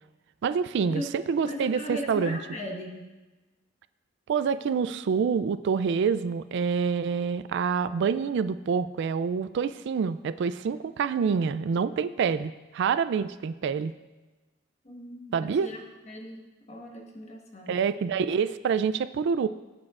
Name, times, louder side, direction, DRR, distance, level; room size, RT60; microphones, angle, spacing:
voice 1, 0.4-2.4 4.3-13.9 15.3-15.7 17.7-19.5, right 6 dB, 60° right, 13 dB, 0.3 m, -27 dB
voice 2, 1.4-3.1 14.8-17.8, left 1 dB, 35° left, 1 dB, 1.3 m, -38 dB
16.5 x 8.5 x 2.4 m, 1.2 s
head